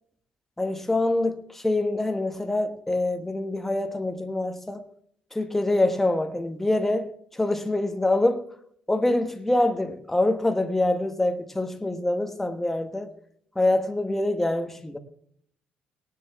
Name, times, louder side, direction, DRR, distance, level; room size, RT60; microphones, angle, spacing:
voice 1, 0.6-4.8 5.3-8.4 8.9-13.1 13.5-15.0, left 2 dB, 10° left, 1.1 m, -25 dB
18.0 x 10.5 x 3.5 m
cardioid pair, 140°, 3 cm